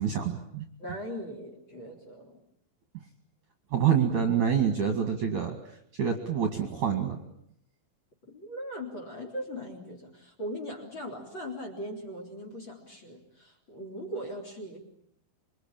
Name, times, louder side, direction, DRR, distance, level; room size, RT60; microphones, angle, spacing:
voice 1, 0.0-0.7 3.7-5.6 6.0-7.2, right 8 dB, 50° right, 6 dB, 2.7 m, -26 dB
voice 2, 0.8-2.4 8.3-14.8, equal, 25° left, 6 dB, 3.7 m, -39 dB
26.5 x 23.5 x 8.9 m, 0.69 s
omnidirectional pair, 5.7 m